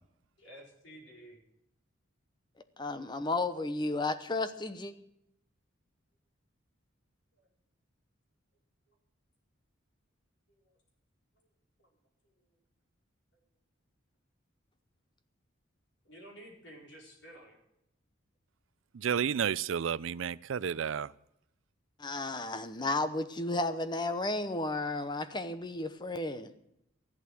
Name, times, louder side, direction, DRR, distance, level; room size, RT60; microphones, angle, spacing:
voice 1, 0.4-1.4 7.4-7.5 10.5-10.8 11.4-11.5 11.8-11.9 12.2-12.5 16.0-17.6, equal, 60° left, 4.7 m, -53 dB
voice 2, 2.8-4.9 22.0-26.5, left 2 dB, 20° left, 0.9 m, -33 dB
voice 3, 18.9-21.1, right 7 dB, 75° right, 0.4 m, -31 dB
14.5 x 11.5 x 6.2 m
head